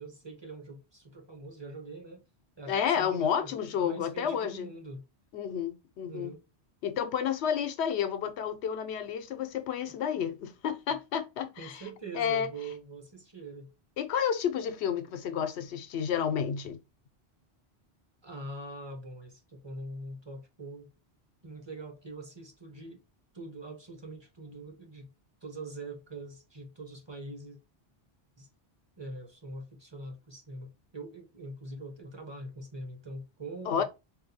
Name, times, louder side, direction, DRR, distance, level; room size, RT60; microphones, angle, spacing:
voice 1, 0.0-2.2 2.6-5.0 6.0-6.4 10.2-10.3 11.6-13.7 18.2-20.9 21.4-23.0 23.3-25.1 25.4-27.6 28.4-28.5 29.0-33.8, right 2 dB, 30° right, 0.7 m, -43 dB
voice 2, 2.7-4.7 5.3-6.3 6.8-11.8 12.1-12.5 14.0-16.8 33.7-33.8, left 8 dB, 85° left, 0.8 m, -30 dB
4.0 x 2.2 x 2.7 m
omnidirectional pair, 1.1 m